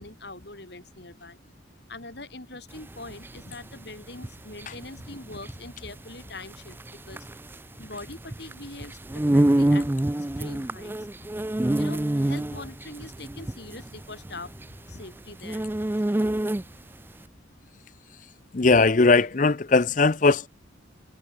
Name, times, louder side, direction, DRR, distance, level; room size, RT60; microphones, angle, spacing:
voice 1, 0.0-1.4 1.9-6.8 7.1-7.3 7.8-9.9 10.4-14.5 14.9-15.7 16.5-16.6, left 2 dB, 55° left, 3.7 m, -42 dB
sound 1, 2.7-16.9, right 1 dB, 10° right, 0.4 m, -27 dB
voice 2, 18.5-20.5, left 3 dB, 40° left, 0.6 m, -19 dB
head